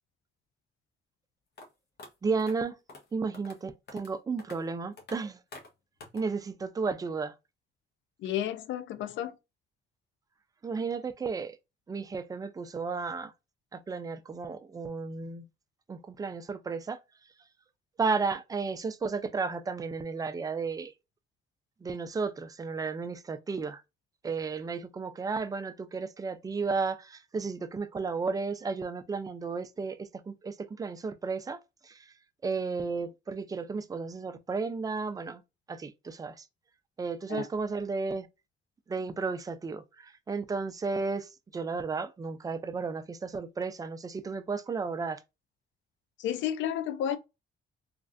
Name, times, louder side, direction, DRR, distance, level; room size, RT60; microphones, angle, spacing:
sound 1, 1.6-1.7 2.0-2.1 2.4-2.5 2.9-3.0 3.3-3.6 3.9-4.1 4.4-4.6 5.0-5.2 5.5-5.7 6.0-6.2, left 2 dB, 55° left, 1.1 m, -47 dB
voice 1, 2.2-2.8 3.1-5.4 6.1-7.3 10.6-11.6 11.9-13.3 13.7-15.5 15.9-17.0 18.0-20.9 21.8-23.8 24.2-32.1 32.4-35.4 35.7-36.4 37.0-38.3 38.9-45.2, right 4 dB, 20° right, 0.4 m, -33 dB
voice 2, 8.2-9.4 37.3-37.4 46.2-47.2, left 10 dB, 70° left, 0.4 m, -31 dB
3.1 x 2.5 x 2.4 m
cardioid pair, 90°, 20 cm